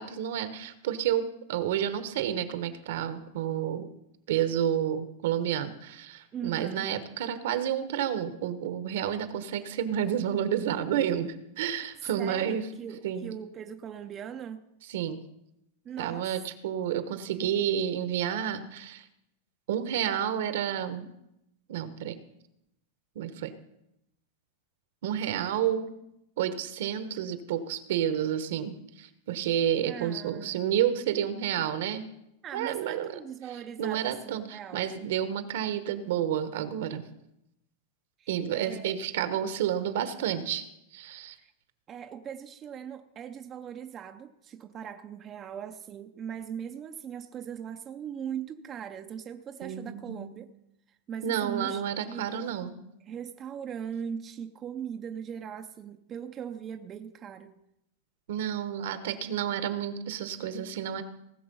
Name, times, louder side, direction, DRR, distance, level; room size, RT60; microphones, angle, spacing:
voice 1, 0.0-3.9 4.3-12.7 13.0-13.3 14.9-15.2 16.0-19.1 19.7-21.1 21.7-22.2 23.1-23.5 25.0-25.9 26.4-32.1 32.5-33.1 33.8-37.0 38.3-40.7 40.9-41.4 49.6-50.3 51.2-52.7 58.3-61.0, right 10 dB, 70° right, 11 dB, 1.2 m, -30 dB
voice 2, 6.3-6.9 12.0-14.6 15.8-16.3 29.9-30.7 32.4-34.9 38.2-39.0 41.4-41.5 41.9-50.5 51.1-51.8 52.1-52.5 53.1-57.6, right 8 dB, 20° right, 7 dB, 0.5 m, -40 dB
18.5 x 6.7 x 5.5 m, 0.82 s
supercardioid pair, 165°, 0 cm